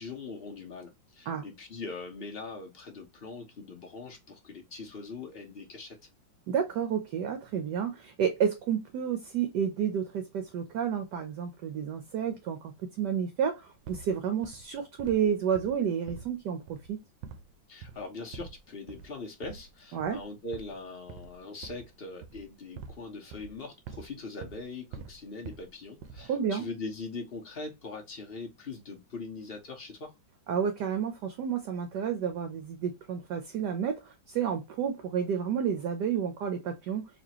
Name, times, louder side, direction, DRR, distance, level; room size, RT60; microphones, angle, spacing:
voice 1, 0.0-6.0 17.7-30.1, left 3 dB, 35° left, 1.1 m, -41 dB
voice 2, 6.5-17.0 19.9-20.2 26.2-26.7 30.5-37.0, right 8 dB, 65° right, 1.2 m, -30 dB
sound 1, 13.8-14.1 14.4-14.7 15.0-15.3 15.5-16.4 16.7-17.0 17.2-17.5 17.8-18.1 18.3-18.6 18.9-19.2 19.4-19.7 20.0-20.2 20.5-22.0 22.2-23.0 23.3-24.1 24.4-24.6 24.9-25.7 26.0-26.4, right 6 dB, 85° right, 1.4 m, -45 dB
4.2 x 2.9 x 2.9 m
omnidirectional pair, 2.2 m